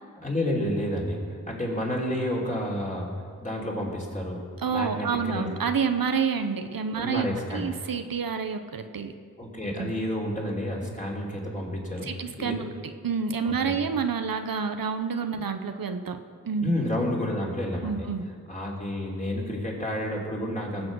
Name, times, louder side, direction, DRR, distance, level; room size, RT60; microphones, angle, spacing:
voice 1, 0.2-3.1 3.4-4.4 4.7-5.5 6.9-7.7 9.4-12.1 12.4-12.6 13.4-13.8 16.6-18.1 18.5-20.9, left 1 dB, 20° left, -3 dB, 3.5 m, -30 dB
voice 2, 4.6-9.1 9.8-9.9 12.0-12.7 13.0-16.2 16.4-16.7 17.8-18.2, right 6 dB, 75° right, 7 dB, 0.9 m, -28 dB
19.5 x 7.6 x 6.3 m, 2.1 s
cardioid pair, 60°, 35 cm